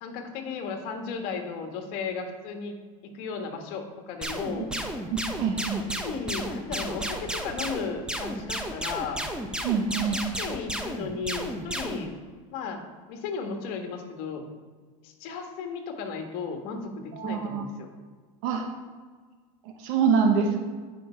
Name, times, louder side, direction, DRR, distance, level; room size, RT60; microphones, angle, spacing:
voice 1, 0.0-2.7 3.0-4.7 5.6-5.7 6.0-9.2 10.1-12.1 12.5-12.8 13.1-14.4 15.0-17.9, left 5 dB, 60° left, 4 dB, 1.6 m, -35 dB
sound 1, 4.2-12.1, right 1 dB, 5° right, 0.8 m, -33 dB
voice 2, 5.4-5.8 9.6-10.2 17.2-17.6 18.4-18.6 19.8-20.6, right 6 dB, 65° right, 4 dB, 1.1 m, -25 dB
9.3 x 5.3 x 4.5 m, 1.5 s
supercardioid pair, 120°, 19 cm